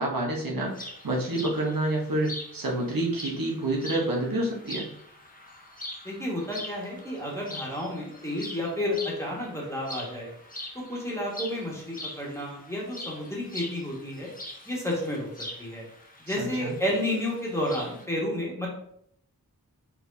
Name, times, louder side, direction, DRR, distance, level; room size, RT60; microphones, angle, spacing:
voice 1, 0.0-4.9 16.3-16.7, right 1 dB, 70° right, -2 dB, 1.1 m, -28 dB
sound 1, 0.7-18.1, left 1 dB, 25° left, 0.9 m, -43 dB
voice 2, 6.0-10.3 10.8-14.3 14.7-15.3 15.6-15.8 16.3-18.7, left 1 dB, 10° left, -4 dB, 1.7 m, -31 dB
4.4 x 4.0 x 2.8 m, 0.69 s
wide cardioid pair, 50°, 35 cm